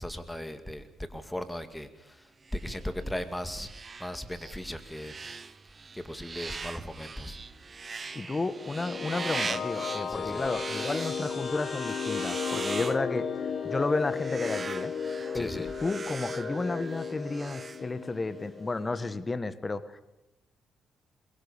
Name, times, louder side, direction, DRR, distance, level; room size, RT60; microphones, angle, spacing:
voice 1, 0.0-3.7 4.0-5.1 5.9-7.4 10.1-10.4 15.3-15.7, left 1 dB, 5° left, 9 dB, 2.2 m, -37 dB
sound 1, 2.4-18.4, right 4 dB, 35° right, 1.0 m, -41 dB
voice 2, 8.1-14.9 15.3-20.0, left 3 dB, 25° left, 14 dB, 1.3 m, -32 dB
sound 2, 8.4-19.2, left 6 dB, 55° left, 1.4 m, -35 dB
22.5 x 21.5 x 7.1 m, 0.96 s
cardioid pair, 90°, 0 cm